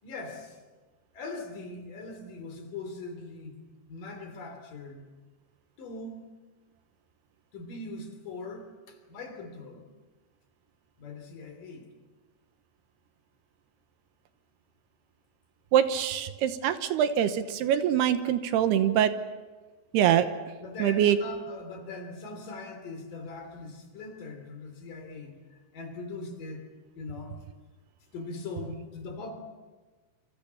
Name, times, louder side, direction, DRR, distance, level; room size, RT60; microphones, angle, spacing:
voice 1, 0.0-0.6 1.1-3.6 3.9-5.0 5.8-6.3 7.5-9.8 11.0-11.9 20.6-25.4 25.7-26.7 26.9-27.4 28.1-29.3, left 3 dB, 55° left, 6 dB, 4.7 m, -41 dB
voice 2, 15.7-19.1 19.9-20.3 20.8-21.2, right 10 dB, 75° right, 10 dB, 3.0 m, -24 dB
27.5 x 26.5 x 7.1 m, 1.3 s
omnidirectional pair, 4.9 m